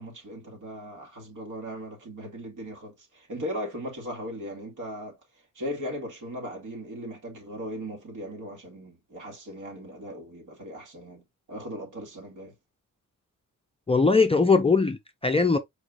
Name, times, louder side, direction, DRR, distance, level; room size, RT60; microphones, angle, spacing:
voice 1, 0.0-5.2 5.5-11.2 11.5-12.6, equal, 70° right, 2.1 m, -38 dB
voice 2, 13.9-15.6, left 4 dB, 20° left, 0.4 m, -21 dB
4.7 x 3.2 x 2.4 m
wide cardioid pair, 170°, 32 cm